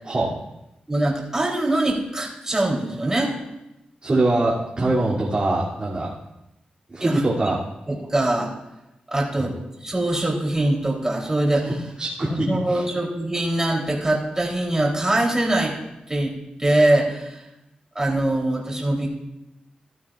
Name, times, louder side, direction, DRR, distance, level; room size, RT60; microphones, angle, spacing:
voice 1, 0.9-3.4 7.0-7.2 7.9-8.5 9.1-9.5 9.8-11.7 12.3-15.7 16.1-16.3 16.6-17.5 18.0-19.1, right 1 dB, 20° right, -2 dB, 3.7 m, -23 dB
voice 2, 4.0-6.1 6.9-7.6 9.4-9.5 12.0-12.8, right 2 dB, 35° right, -7 dB, 3.0 m, -23 dB
16.0 x 12.0 x 2.6 m, 0.92 s
cardioid pair, 70°, 3 cm